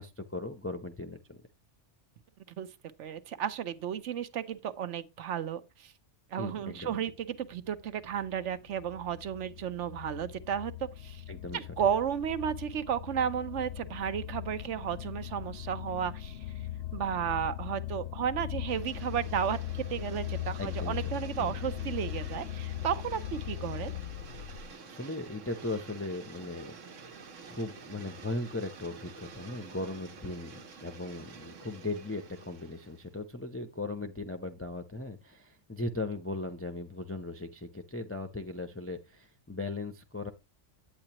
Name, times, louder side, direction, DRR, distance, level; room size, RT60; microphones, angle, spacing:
voice 1, 0.0-1.4 6.4-7.0 11.3-11.7 20.6-21.0 21.4-21.5 24.9-40.3, left 2 dB, 15° left, 0.5 m, -38 dB
voice 2, 3.0-5.9 6.3-11.2 11.5-16.5 16.9-23.9, right 9 dB, 75° right, 1.1 m, -33 dB
sound 1, 7.2-24.7, left 13 dB, 65° left, 0.8 m, -39 dB
sound 2, 18.7-33.2, right 5 dB, 90° right, 1.4 m, -49 dB
8.8 x 8.7 x 2.9 m
omnidirectional pair, 1.3 m